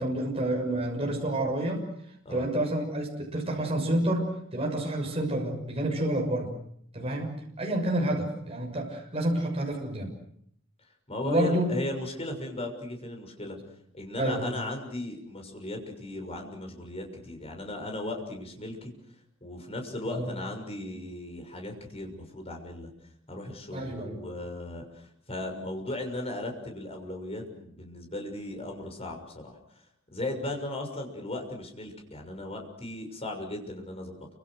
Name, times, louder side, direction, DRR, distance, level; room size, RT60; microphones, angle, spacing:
voice 1, 0.0-1.9 2.3-6.5 6.9-10.1 11.2-11.7 14.2-14.5 20.1-20.3 23.7-24.2, right 1 dB, 30° right, 1 dB, 6.5 m, -29 dB
voice 2, 11.1-13.6 13.9-18.9 19.4-22.9 23.3-29.8 30.1-34.3, left 1 dB, 30° left, 3 dB, 6.5 m, -36 dB
29.0 x 26.0 x 6.5 m, 0.68 s
head